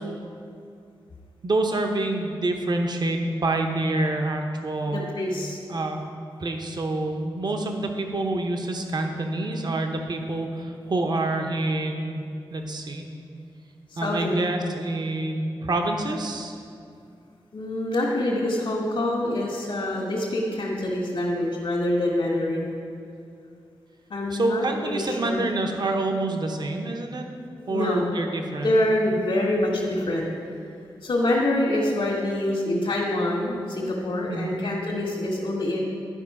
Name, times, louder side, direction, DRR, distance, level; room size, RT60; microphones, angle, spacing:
voice 1, 1.4-5.1 5.7-6.0 6.4-12.2 12.5-13.0 14.0-16.6 24.3-27.2 27.7-28.7 34.3-34.5, right 2 dB, 50° right, 3 dB, 0.9 m, -27 dB
voice 2, 4.9-5.6 13.9-14.4 17.5-22.7 24.1-25.5 27.6-28.1 28.6-30.3 31.0-35.8, left 1 dB, 75° left, -5 dB, 1.6 m, -25 dB
11.0 x 5.0 x 4.9 m, 2.4 s
cardioid pair, 65°, 9 cm